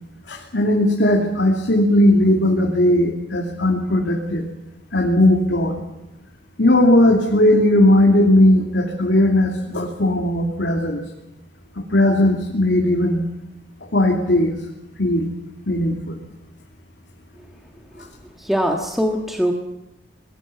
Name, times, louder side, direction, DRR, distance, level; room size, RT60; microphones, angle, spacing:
voice 1, 0.3-4.4 4.9-5.8 6.6-11.0 11.8-13.2 13.9-14.6 15.0-15.3 15.7-16.2, left 1 dB, 80° left, -1 dB, 2.7 m, -17 dB
voice 2, 18.4-19.5, equal, ahead, 1 dB, 1.6 m, -21 dB
28.0 x 20.5 x 5.8 m, 0.94 s
head